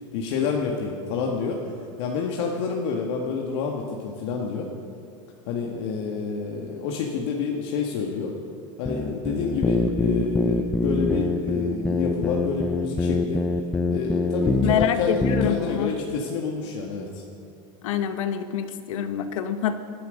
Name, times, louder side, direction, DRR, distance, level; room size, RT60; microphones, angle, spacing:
voice 1, 0.1-4.7 5.5-8.4 8.8-13.4 13.9-17.2, left 5 dB, 60° left, 0 dB, 1.8 m, -28 dB
sound 1, 8.9-14.9 15.2-15.5, left 2 dB, 5° left, 0.6 m, -24 dB
voice 2, 14.6-15.9 17.8-19.8, left 9 dB, 85° left, 8 dB, 1.3 m, -26 dB
20.0 x 12.5 x 5.3 m, 2.6 s
supercardioid pair, 145°, 16 cm